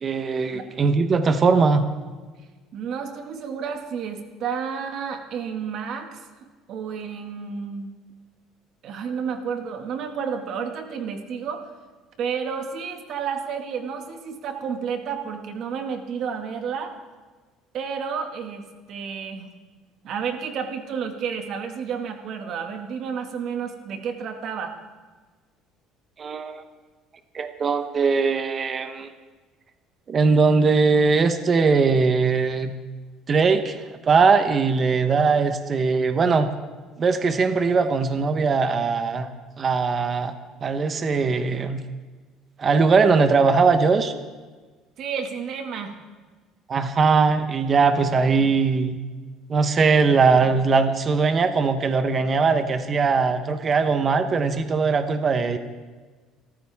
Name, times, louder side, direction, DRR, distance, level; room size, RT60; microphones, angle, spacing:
voice 1, 0.0-1.8 26.2-26.6 27.3-29.1 30.1-32.7 33.3-36.5 37.0-39.3 39.6-40.3 40.6-41.8 42.6-44.1 46.7-49.0 49.5-55.6, right 4 dB, 25° right, 8 dB, 1.0 m, -20 dB
voice 2, 2.7-6.2 6.7-7.9 8.8-11.7 12.2-16.9 17.7-18.6 18.9-19.5 20.0-24.7 45.0-45.9, right 6 dB, 45° right, 5 dB, 2.0 m, -31 dB
27.5 x 14.0 x 3.6 m, 1.3 s
cardioid pair, 165°, 0 cm